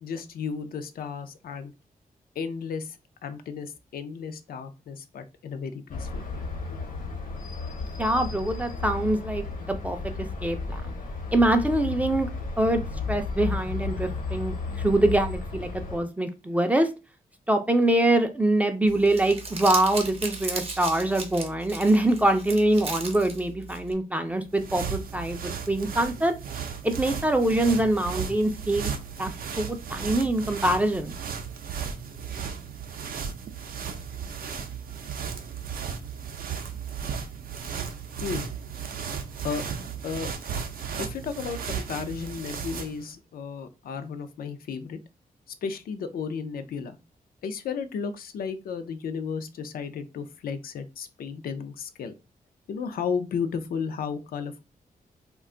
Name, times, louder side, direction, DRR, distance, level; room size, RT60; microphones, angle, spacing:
voice 1, 0.0-1.7 2.4-6.5 38.2-38.5 39.4-39.6 40.0-40.3 41.0-45.0 45.5-47.0 47.4-52.1 52.7-54.6, left 6 dB, 85° left, 9 dB, 0.4 m, -34 dB
sound 1, 5.9-16.0, left 4 dB, 70° left, 0.8 m, -33 dB
voice 2, 8.0-10.0 10.4-11.0 11.3-12.3 12.6-12.8 13.1-16.9 17.5-26.3 26.8-28.9 29.2-29.3 29.6-31.1, right 1 dB, 10° right, 6 dB, 0.3 m, -24 dB
Crumpling crinkling, 18.9-23.9, right 3 dB, 40° right, 0.6 m, -36 dB
sound 2, 24.3-43.1, right 7 dB, 75° right, 0.4 m, -35 dB
2.4 x 2.2 x 3.6 m, 0.28 s
wide cardioid pair, 155°, 15 cm